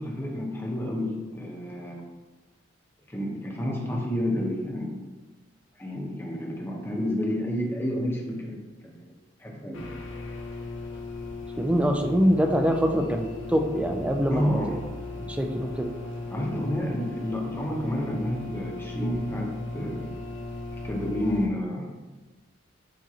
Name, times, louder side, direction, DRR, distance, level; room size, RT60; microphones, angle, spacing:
voice 1, 0.0-2.0 3.1-5.0 5.8-9.1 9.4-9.8 14.3-14.8 16.3-20.1 20.8-21.9, left 1 dB, 10° left, -1 dB, 0.8 m, -30 dB
sound 1, 9.7-21.5, left 3 dB, 85° left, 0.6 m, -37 dB
voice 2, 11.6-14.4 15.2-15.9, equal, 5° right, 4 dB, 0.3 m, -24 dB
7.4 x 2.5 x 2.8 m, 1.2 s
head